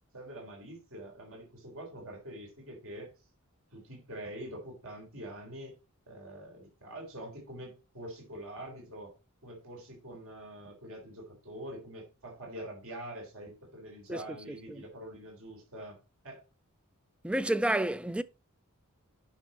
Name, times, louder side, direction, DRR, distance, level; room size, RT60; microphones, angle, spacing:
voice 1, 0.1-3.1 3.7-5.7 6.1-9.1 9.4-16.4, right 1 dB, 65° right, 3.9 m, -45 dB
voice 2, 17.2-18.2, right 1 dB, 5° right, 0.4 m, -29 dB
9.7 x 6.2 x 4.2 m
head